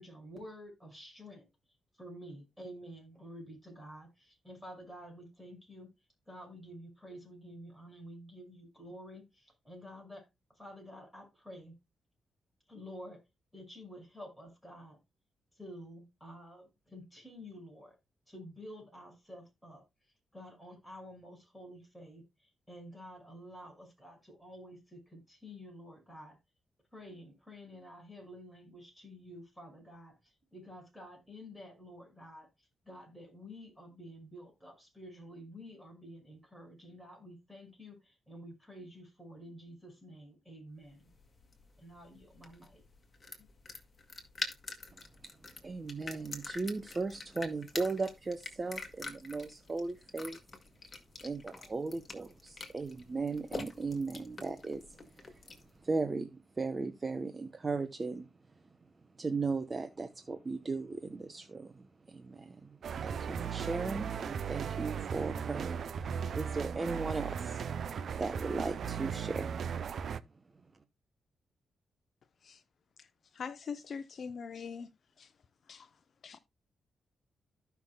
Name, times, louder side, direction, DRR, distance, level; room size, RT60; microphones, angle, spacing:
voice 1, 0.0-1.5 1.9-5.9 6.3-11.8 12.7-13.2 13.5-15.0 15.5-18.0 18.3-19.8 20.3-26.4 26.9-41.1 41.8-42.8 43.4-43.5, equal, ahead, 5.7 m, -50 dB
sound 1, 40.9-55.8, left 3 dB, 30° left, 1.9 m, -46 dB
voice 2, 44.9-50.4 51.2-69.8 70.0-70.4, right 3 dB, 30° right, 0.8 m, -37 dB
sound 2, 62.8-70.2, right 7 dB, 65° right, 0.5 m, -37 dB
voice 3, 73.4-74.9 75.2-75.3 75.7-75.9 76.2-76.4, left 6 dB, 55° left, 0.6 m, -42 dB
15.0 x 5.9 x 2.2 m
cardioid pair, 100°, 0 cm